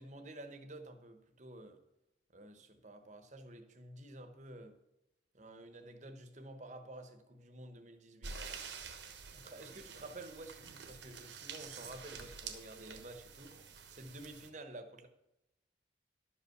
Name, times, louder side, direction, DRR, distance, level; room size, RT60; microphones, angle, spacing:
voice 1, 0.0-1.8 2.3-4.8 5.3-8.3 9.3-13.6 13.9-15.1, right 1 dB, 40° right, 7 dB, 1.1 m, -51 dB
sound 1, 8.2-14.5, right 5 dB, 70° right, 1.2 m, -48 dB
12.0 x 5.4 x 6.5 m, 0.88 s
head